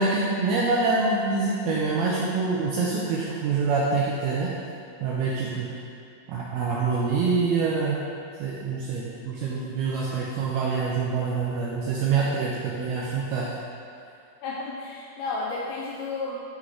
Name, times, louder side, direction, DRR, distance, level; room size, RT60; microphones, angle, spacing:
voice 1, 0.0-4.5 5.0-5.7 6.3-8.0 8.4-13.5, right 4 dB, 85° right, -5 dB, 2.3 m, -25 dB
voice 2, 14.4-16.4, left 3 dB, 80° left, -4 dB, 2.3 m, -32 dB
11.0 x 3.9 x 3.2 m, 2.4 s
omnidirectional pair, 5.0 m